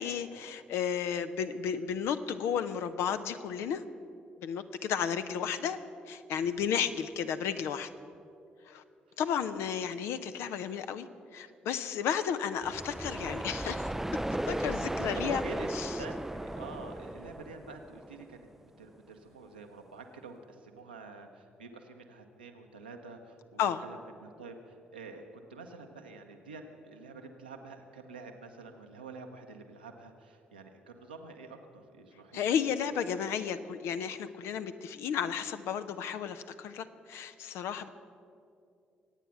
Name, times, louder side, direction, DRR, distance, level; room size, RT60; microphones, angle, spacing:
voice 1, 0.0-3.8 4.4-7.9 8.7-8.8 9.2-11.1 11.3-13.9 14.5-15.4 15.7-15.9 23.6-23.8 32.3-37.9, left 8 dB, 60° left, 11 dB, 0.7 m, -33 dB
sound 1, 12.6-18.4, right 1 dB, 5° right, 0.4 m, -36 dB
voice 2, 14.9-15.7 16.0-18.5 18.8-32.4, right 3 dB, 85° right, 3 dB, 0.9 m, -48 dB
24.5 x 9.1 x 5.9 m, 2.5 s
figure-of-eight pair, 40°, 5 cm